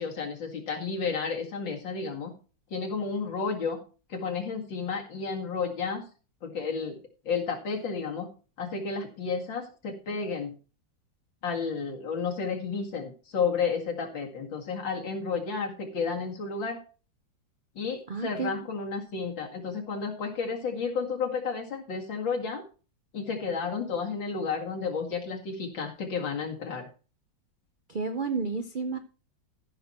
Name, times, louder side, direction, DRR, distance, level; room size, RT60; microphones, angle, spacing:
voice 1, 0.0-2.3 2.7-3.8 4.1-6.0 6.4-7.0 7.3-8.3 8.6-10.5 11.4-16.8 17.8-22.6 23.1-26.9, left 5 dB, 85° left, 1 dB, 2.8 m, -32 dB
voice 2, 18.1-18.5 27.9-29.0, right 4 dB, 75° right, 8 dB, 0.4 m, -31 dB
14.5 x 6.0 x 4.3 m, 0.36 s
omnidirectional pair, 2.0 m